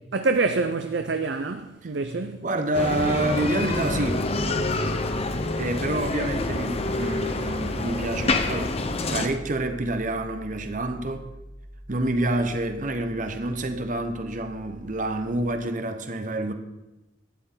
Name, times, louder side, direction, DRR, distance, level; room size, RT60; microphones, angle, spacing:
voice 1, 0.1-2.4, right 3 dB, 60° right, 0.5 m, -26 dB
voice 2, 2.4-4.3 5.6-11.3 11.9-16.5, right 1 dB, 40° right, 1.0 m, -28 dB
Bicycle, 2.7-9.3, left 2 dB, 30° left, 0.7 m, -27 dB
Piano, 3.4-15.7, equal, 20° right, 1.7 m, -43 dB
12.0 x 10.0 x 3.9 m
head